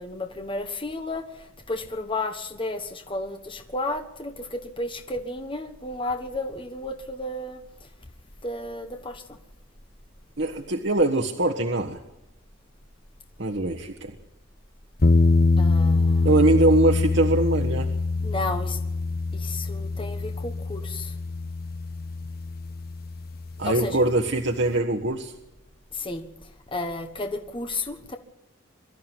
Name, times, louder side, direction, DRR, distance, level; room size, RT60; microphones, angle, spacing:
voice 1, 0.0-7.9 8.4-9.4 15.6-16.3 18.2-18.8 19.3-21.1 23.6-24.0 25.9-28.2, left 2 dB, 25° left, 6 dB, 1.4 m, -33 dB
voice 2, 10.4-12.0 13.4-14.1 16.2-17.9 23.6-25.3, right 2 dB, 60° right, 3 dB, 1.5 m, -22 dB
sound 1, 15.0-23.9, left 3 dB, 50° left, 0.9 m, -24 dB
24.0 x 13.0 x 9.1 m, 0.89 s
head